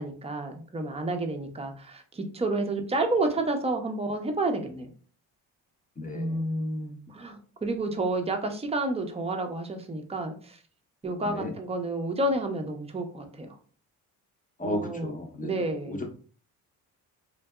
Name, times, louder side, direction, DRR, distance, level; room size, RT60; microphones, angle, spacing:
voice 1, 0.0-4.9 6.1-10.6 11.0-13.6 14.6-16.0, right 2 dB, 15° right, 5 dB, 0.5 m, -30 dB
voice 2, 6.0-6.4 11.2-11.5 14.6-15.5 15.9-16.0, left 1 dB, 20° left, 2 dB, 0.7 m, -34 dB
2.6 x 2.2 x 2.2 m, 0.42 s
supercardioid pair, 55°, 42 cm